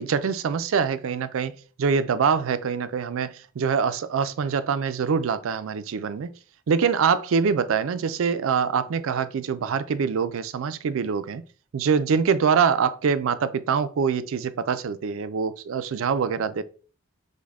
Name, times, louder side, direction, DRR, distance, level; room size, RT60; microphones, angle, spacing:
voice 1, 0.0-6.3 6.7-11.4 11.7-16.6, right 6 dB, 85° right, 0.4 m, -24 dB
5.2 x 2.1 x 3.5 m
head